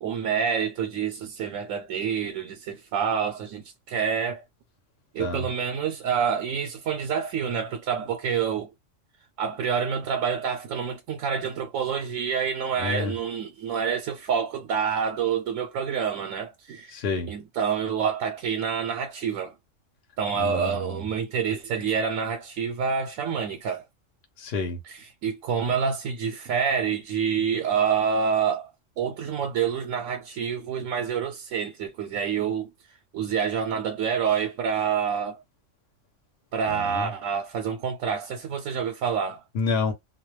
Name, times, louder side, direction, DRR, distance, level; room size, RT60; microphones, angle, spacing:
voice 1, 0.0-4.4 5.1-8.7 9.4-17.0 17.3-19.5 20.2-23.8 25.2-28.7 29.0-32.7 33.1-35.4 36.5-39.4, right 7 dB, 90° right, 1.0 m, -27 dB
voice 2, 12.8-13.1 16.9-17.3 20.4-21.1 24.4-24.8 36.7-37.1 39.5-39.9, left 4 dB, 60° left, 0.9 m, -29 dB
2.3 x 2.2 x 3.0 m
omnidirectional pair, 1.3 m